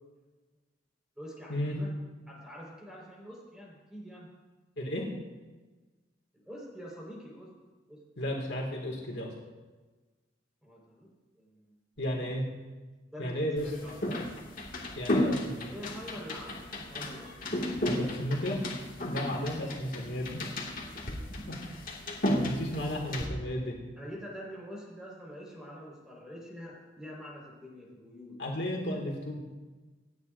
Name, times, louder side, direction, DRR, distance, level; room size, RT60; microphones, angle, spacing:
voice 1, 1.1-2.0 2.3-4.3 6.3-7.5 7.9-8.0 10.6-11.1 11.3-11.7 13.1-13.9 15.7-17.5 22.8-23.4 24.0-28.4, equal, 5° right, -4 dB, 4.7 m, -45 dB
voice 2, 4.8-5.1 8.2-9.3 12.0-12.5 13.2-13.7 14.9-15.7 17.8-18.8 19.1-20.4 21.5-21.6 22.3-23.8 28.4-29.4, equal, 65° left, -1 dB, 2.3 m, -33 dB
sound 1, 13.6-23.3, left 1 dB, 45° left, 2.1 m, -34 dB
27.5 x 9.5 x 2.7 m, 1.3 s
head